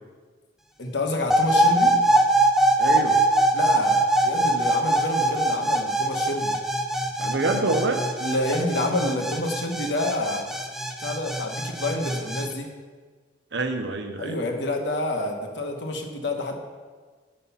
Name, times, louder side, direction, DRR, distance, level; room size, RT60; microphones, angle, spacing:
voice 1, 0.8-1.9 3.5-6.5 8.2-10.5 11.0-12.7 14.2-16.6, left 1 dB, 90° left, 2 dB, 1.2 m, -28 dB
sound 1, 1.3-12.5, right 1 dB, ahead, 0.5 m, -22 dB
voice 2, 2.8-3.2 7.2-8.0 13.5-14.4, right 2 dB, 85° right, 6 dB, 0.8 m, -26 dB
7.8 x 5.7 x 5.6 m, 1.5 s
head